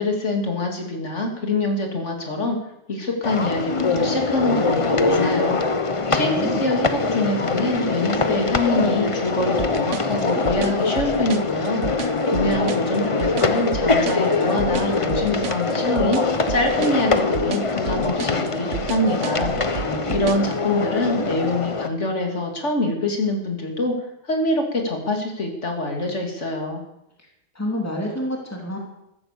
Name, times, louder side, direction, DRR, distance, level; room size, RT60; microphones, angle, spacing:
voice 1, 0.0-2.6 2.9-5.6 6.1-11.8 12.3-16.2 16.5-19.5 20.1-23.9 24.3-26.8, left 2 dB, 85° left, 2 dB, 3.2 m, -25 dB
sound 1, 3.2-21.9, left 3 dB, 30° left, 0.9 m, -23 dB
voice 2, 6.0-6.7 19.8-20.2 27.5-28.8, left 1 dB, 15° left, -1 dB, 3.1 m, -29 dB
sound 2, 9.6-20.5, right 8 dB, 85° right, 1.2 m, -32 dB
14.5 x 14.5 x 6.9 m, 0.84 s
omnidirectional pair, 1.2 m